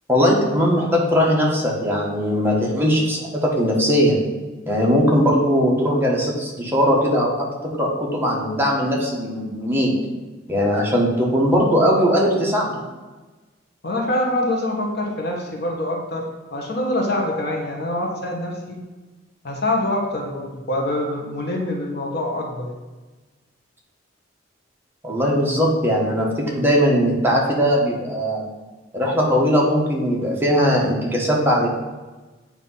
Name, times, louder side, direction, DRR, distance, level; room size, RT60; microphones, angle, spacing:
voice 1, 0.1-4.2 4.7-7.5 7.8-9.9 10.5-12.8 25.0-28.5 28.9-31.7, equal, 10° right, -3 dB, 1.2 m, -19 dB
voice 2, 13.8-18.8 19.4-22.7, left 1 dB, 60° left, 0 dB, 1.3 m, -25 dB
8.7 x 3.0 x 5.5 m, 1.2 s
head